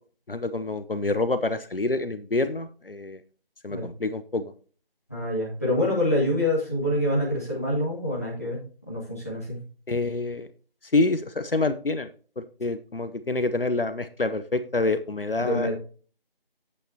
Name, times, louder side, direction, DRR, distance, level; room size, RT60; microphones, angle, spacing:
voice 1, 0.3-3.2 3.6-4.5 9.9-10.5 10.8-12.1 12.4-15.7, left 2 dB, 70° left, 11 dB, 0.8 m, -27 dB
voice 2, 5.1-8.6 8.9-9.6 15.4-15.7, left 1 dB, 15° left, -6 dB, 1.6 m, -26 dB
9.8 x 8.5 x 2.8 m, 0.40 s
figure-of-eight pair, 175°, 29 cm